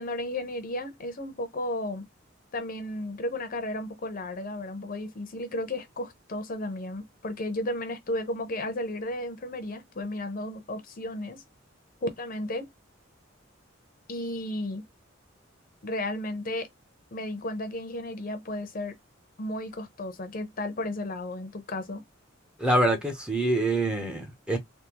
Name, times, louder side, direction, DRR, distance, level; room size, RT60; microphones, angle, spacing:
voice 1, 0.0-2.0 2.5-11.4 12.0-12.7 14.1-14.8 15.8-16.7 17.1-19.0 19.4-22.0, left 1 dB, 45° left, 0.7 m, -33 dB
voice 2, 22.6-24.6, right 1 dB, 5° right, 0.8 m, -25 dB
3.6 x 2.2 x 2.9 m
head